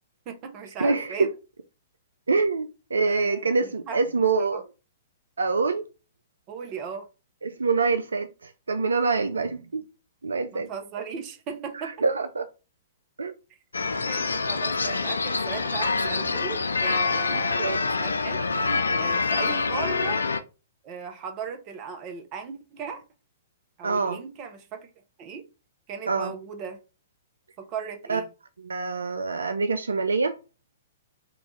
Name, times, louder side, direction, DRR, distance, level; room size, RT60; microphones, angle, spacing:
voice 1, 0.3-1.3 3.1-4.0 4.3-4.6 6.5-7.1 10.5-12.0 13.5-18.4 19.0-20.2 20.8-23.0 23.8-24.9 25.2-25.4 25.9-26.8 27.6-28.3, right 6 dB, 35° right, 0.7 m, -37 dB
voice 2, 0.8-1.3 2.3-4.6 5.4-5.9 7.4-9.8 10.2-10.7 11.8-12.5 13.2-13.3 17.3-17.8 23.8-24.2 26.1-26.3 28.1-28.2 28.6-30.4, right 4 dB, 75° right, 0.3 m, -25 dB
sound 1, 13.7-20.4, left 4 dB, 80° left, 0.3 m, -26 dB
3.0 x 2.4 x 3.7 m
figure-of-eight pair, 115°, 0 cm